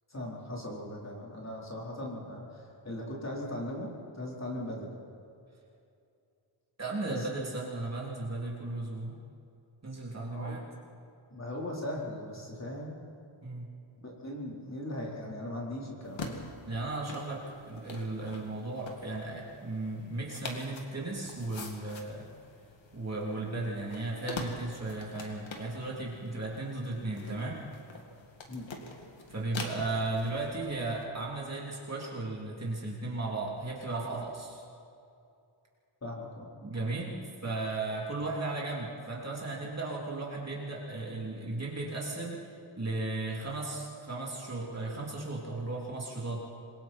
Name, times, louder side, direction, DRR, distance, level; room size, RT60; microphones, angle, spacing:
voice 1, 0.1-4.9 7.0-7.3 10.3-10.6 11.3-12.9 14.0-16.3 28.5-28.6 36.0-36.5, left 1 dB, 30° left, -3 dB, 4.4 m, -39 dB
voice 2, 6.8-9.2 9.8-10.6 13.4-13.7 16.6-22.3 22.9-27.6 29.3-34.6 36.6-42.4 42.8-46.4, right 2 dB, 30° right, -3 dB, 3.2 m, -35 dB
sound 1, 16.0-31.0, left 3 dB, 65° left, 2.4 m, -45 dB
27.0 x 22.0 x 4.5 m, 2.6 s
wide cardioid pair, 150°, 49 cm